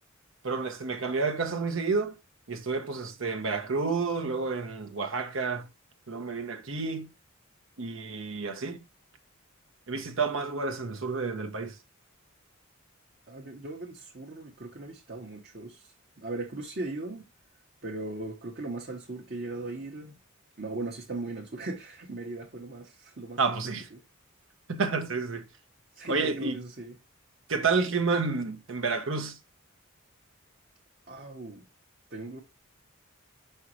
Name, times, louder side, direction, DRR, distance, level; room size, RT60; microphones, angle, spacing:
voice 1, 0.4-2.2 2.5-5.7 6.1-7.1 7.8-8.8 9.9-11.7 23.4-23.9 24.7-25.4 26.1-26.6 27.5-29.4, right 4 dB, 65° right, 1.0 m, -30 dB
voice 2, 13.3-17.3 17.8-20.2 20.6-23.6 23.9-24.0 25.9-27.0 31.1-31.7 32.1-32.4, right 2 dB, 45° right, 1.2 m, -38 dB
6.1 x 5.5 x 3.0 m
head